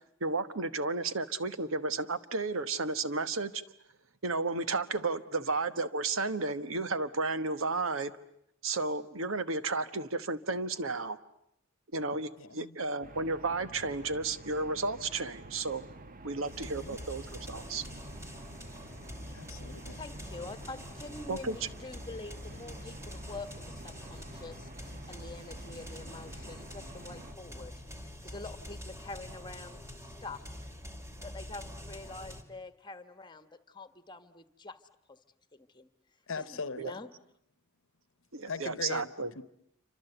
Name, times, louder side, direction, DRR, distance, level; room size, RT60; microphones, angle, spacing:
voice 1, 0.0-3.6 4.2-8.1 8.6-11.2 11.9-15.9 16.2-17.8 21.3-21.6 36.8-36.9 38.3-39.3, right 3 dB, 70° right, 12 dB, 1.3 m, -33 dB
voice 2, 12.4-12.8 16.6-17.0 19.3-20.0 36.3-37.0 38.5-39.5, left 4 dB, 70° left, 15 dB, 1.0 m, -40 dB
sound 1, 13.0-27.3, right 2 dB, 45° right, 1.2 m, -49 dB
sound 2, 16.4-32.4, left 1 dB, 15° right, 2.4 m, -45 dB
voice 3, 19.9-29.9 30.2-30.4 31.2-34.8 35.1-35.2 35.5-35.9 36.4-37.1, left 3 dB, 20° left, 11 dB, 1.4 m, -46 dB
28.0 x 25.5 x 8.0 m, 0.73 s
head